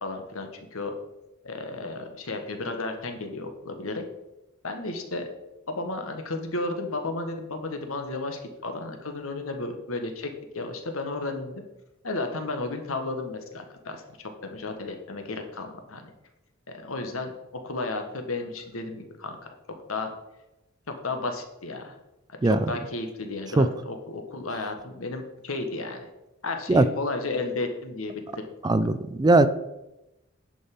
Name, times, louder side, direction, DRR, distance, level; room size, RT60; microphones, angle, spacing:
voice 1, 0.0-0.9 1.4-4.0 4.6-5.3 5.7-11.6 12.0-16.1 16.7-17.3 17.6-19.5 19.9-20.1 20.9-21.9 22.4-26.1 26.4-28.5, left 2 dB, 90° left, 5 dB, 1.5 m, -33 dB
voice 2, 22.4-22.7 23.6-23.7 26.7-26.8 28.6-29.5, right 2 dB, 20° right, 14 dB, 0.4 m, -19 dB
10.5 x 5.3 x 5.4 m, 0.95 s
head